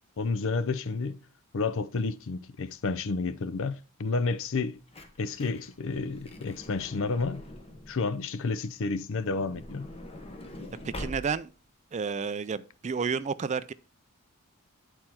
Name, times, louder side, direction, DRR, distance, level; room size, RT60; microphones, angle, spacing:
voice 1, 0.2-1.2 1.5-4.8 5.2-7.4 7.9-9.9, left 4 dB, 60° left, 0.6 m, -30 dB
Truck / Door, 4.8-8.1 9.1-11.6 12.3-12.4 12.6-12.8, left 1 dB, 25° left, 1.1 m, -44 dB
voice 2, 10.8-11.5 11.9-13.7, right 5 dB, 30° right, 0.3 m, -31 dB
9.6 x 4.4 x 4.3 m
head